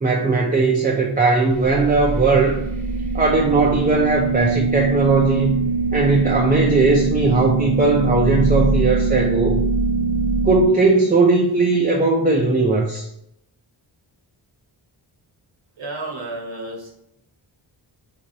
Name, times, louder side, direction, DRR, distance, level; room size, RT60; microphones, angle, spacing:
voice 1, 0.0-2.6 3.1-5.6 5.9-9.6 10.4-13.0, right 3 dB, 20° right, -2 dB, 0.5 m, -18 dB
sound 1, 1.5-10.7, right 3 dB, 90° right, 1.4 m, -22 dB
voice 2, 15.8-16.9, right 2 dB, 65° right, -1 dB, 1.1 m, -31 dB
3.5 x 3.2 x 2.7 m, 0.77 s
cardioid pair, 70°, 49 cm